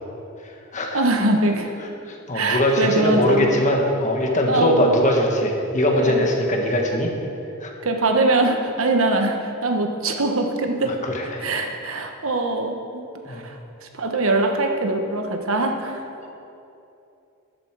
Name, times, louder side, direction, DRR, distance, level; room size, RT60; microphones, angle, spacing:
voice 1, 0.9-1.8 2.3-3.5 4.5-5.1 5.9-6.3 7.8-10.9 11.4-13.0 13.3-16.1, right 2 dB, 75° right, 4 dB, 1.2 m, -22 dB
voice 2, 2.1-7.1 7.6-7.7 10.9-11.4 13.2-13.5 16.2-16.3, left 1 dB, 35° left, 1 dB, 1.6 m, -21 dB
12.5 x 11.0 x 4.8 m, 2.8 s
head